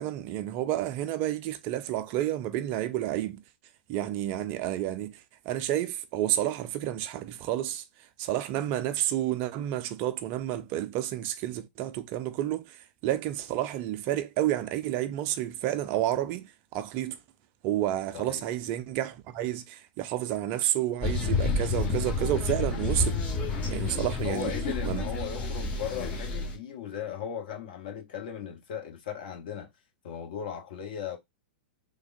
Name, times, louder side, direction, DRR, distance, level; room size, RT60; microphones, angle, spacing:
voice 1, 0.0-3.4 3.9-7.8 8.2-17.2 17.6-23.1 23.7-24.5 24.9-25.0, right 13 dB, 35° right, 0.4 m, -30 dB
sound 1, 21.0-26.5, left 3 dB, 25° left, 1.1 m, -29 dB
voice 2, 24.2-29.7 30.0-31.2, left 8 dB, 55° left, 1.0 m, -37 dB
3.3 x 2.1 x 2.5 m
figure-of-eight pair, 100°, 6 cm